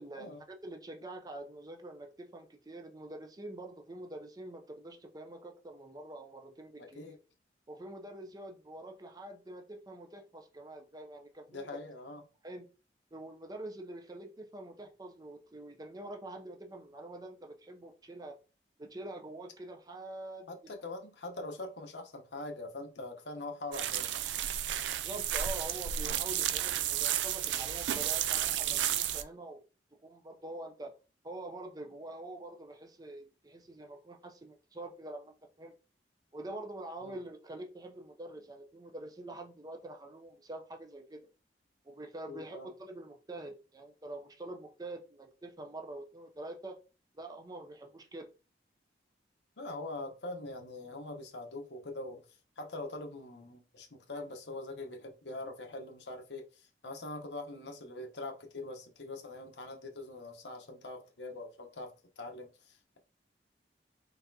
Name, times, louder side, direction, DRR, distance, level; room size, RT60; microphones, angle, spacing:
voice 1, 0.0-7.2 7.7-11.7 12.4-12.7 13.1-18.4 18.8-20.5 24.9-29.6 29.9-30.9 31.2-35.7 36.3-41.3 41.8-46.8 47.1-48.3, right 2 dB, 20° right, 0.5 m, -45 dB
voice 2, 6.8-7.2 11.5-12.2 20.5-24.2 37.0-37.2 42.3-42.7 49.6-52.2 52.6-63.0, left 2 dB, 80° left, 0.9 m, -43 dB
sound 1, 23.7-29.2, right 11 dB, 85° right, 0.3 m, -32 dB
4.0 x 3.4 x 2.7 m
head